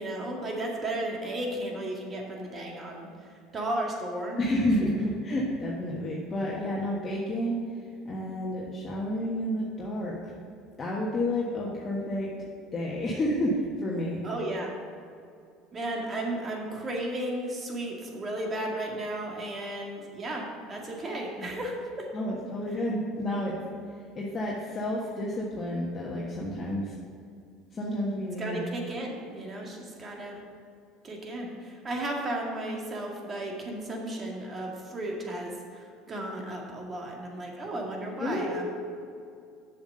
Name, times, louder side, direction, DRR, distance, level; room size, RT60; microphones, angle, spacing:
voice 1, 0.0-4.4 14.2-14.7 15.7-22.4 28.4-30.4 31.0-38.7, right 1 dB, 30° right, 0 dB, 2.0 m, -34 dB
voice 2, 4.4-10.3 10.8-12.3 12.7-14.2 22.1-23.6 24.1-27.0 27.7-28.6 38.2-38.7, left 1 dB, 30° left, -4 dB, 1.4 m, -30 dB
7.1 x 6.0 x 6.6 m, 2.3 s
supercardioid pair, 85°, 0 cm